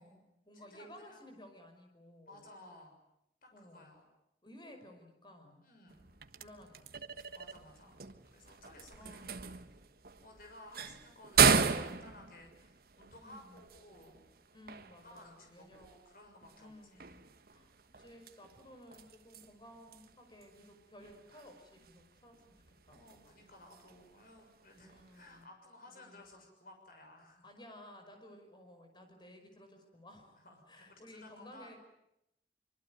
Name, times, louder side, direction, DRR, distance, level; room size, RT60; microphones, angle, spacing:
voice 1, 0.0-2.4 3.5-4.1 4.4-5.6 6.4-7.3 9.0-9.4 13.3-13.7 14.5-15.9 16.6-17.2 17.5-23.4 24.8-25.5 25.8-26.2 27.4-30.4 30.7-31.8, left 1 dB, 25° left, 5 dB, 5.5 m, -56 dB
voice 2, 0.5-1.4 2.3-2.9 3.4-4.0 5.6-6.1 7.3-8.0 8.3-9.3 10.2-14.2 15.0-17.3 22.9-27.5 30.3-31.8, left 1 dB, 55° left, 3 dB, 6.6 m, -57 dB
sound 1, 5.9-25.4, right 6 dB, 55° right, 1.4 m, -37 dB
25.0 x 24.0 x 9.4 m, 0.82 s
head